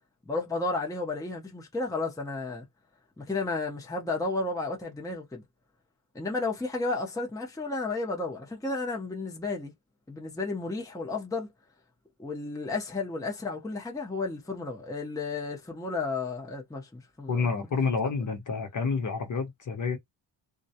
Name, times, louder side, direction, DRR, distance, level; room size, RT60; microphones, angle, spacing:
voice 1, 0.3-2.6 3.2-5.4 6.1-9.7 10.1-11.5 12.2-17.5, left 3 dB, 5° left, 0.7 m, -32 dB
voice 2, 17.3-20.0, left 5 dB, 40° left, 0.9 m, -29 dB
2.3 x 2.1 x 2.7 m
cardioid pair, 75°, 47 cm